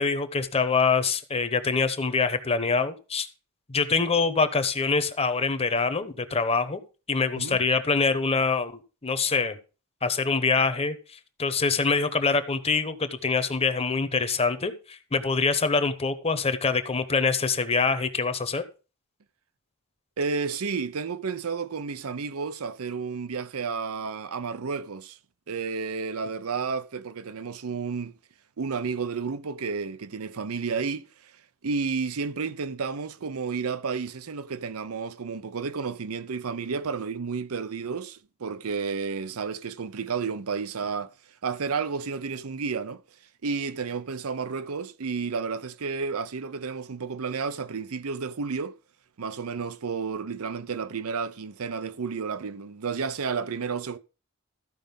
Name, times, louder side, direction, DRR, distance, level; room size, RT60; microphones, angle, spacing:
voice 1, 0.0-3.3 3.7-6.8 7.1-8.7 9.0-9.6 10.0-11.0 11.4-18.6, left 4 dB, 30° left, 0.9 m, -25 dB
voice 2, 20.2-25.2 25.5-28.1 28.6-31.3 31.6-41.1 41.4-43.0 43.4-48.8 49.2-54.0, right 5 dB, 80° right, 0.6 m, -31 dB
14.0 x 5.1 x 5.3 m
head